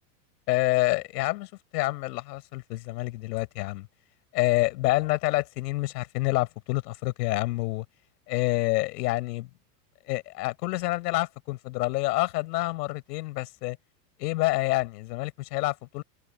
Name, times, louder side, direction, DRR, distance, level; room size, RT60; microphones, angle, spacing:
voice 1, 0.5-3.9 4.3-7.8 8.3-9.5 10.1-13.8 14.2-16.0, left 20 dB, 70° left, 5.5 m, -27 dB
supercardioid pair, 135°, 49 cm